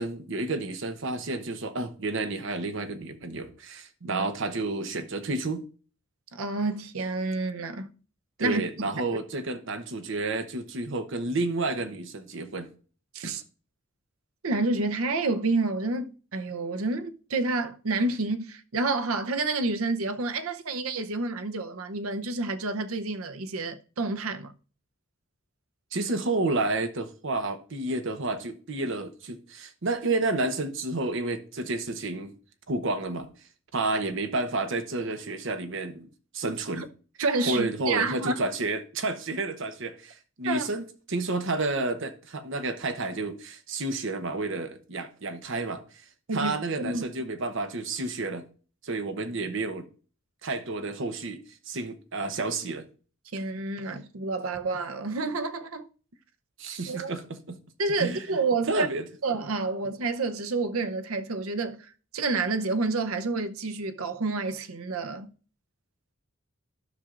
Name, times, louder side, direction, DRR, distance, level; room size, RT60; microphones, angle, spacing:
voice 1, 0.0-5.6 8.4-12.7 13.2-13.4 25.9-32.3 32.7-33.3 33.7-36.1 36.3-36.9 37.5-46.0 46.3-48.5 48.8-49.9 50.4-51.4 51.7-52.9 56.6-57.6 58.0-58.2 58.7-59.1, right 2 dB, 65° right, 0.9 m, -30 dB
voice 2, 6.3-7.9 8.4-8.6 13.1-13.4 14.4-24.5 36.8-36.9 37.2-38.3 40.4-40.7 46.3-46.5 46.8-47.0 53.3-55.9 56.9-57.1 57.8-58.9 59.2-65.3, right 3 dB, 90° right, 0.7 m, -29 dB
13.0 x 5.8 x 2.5 m
head